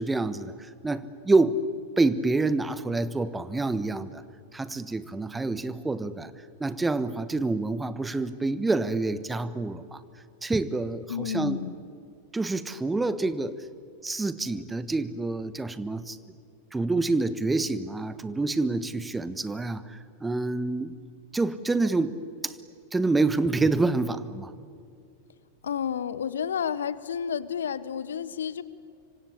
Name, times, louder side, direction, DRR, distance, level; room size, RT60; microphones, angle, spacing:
voice 1, 0.0-1.6 2.0-4.2 4.5-6.3 6.6-10.0 10.4-11.6 12.3-13.5 14.0-16.2 16.7-20.9 21.3-22.5 22.9-24.5, right 3 dB, 10° right, 15 dB, 1.2 m, -27 dB
voice 2, 11.1-11.8 25.6-28.6, left 8 dB, 65° left, 17 dB, 1.0 m, -31 dB
26.0 x 25.0 x 8.5 m, 2.4 s
figure-of-eight pair, 90°, 0 cm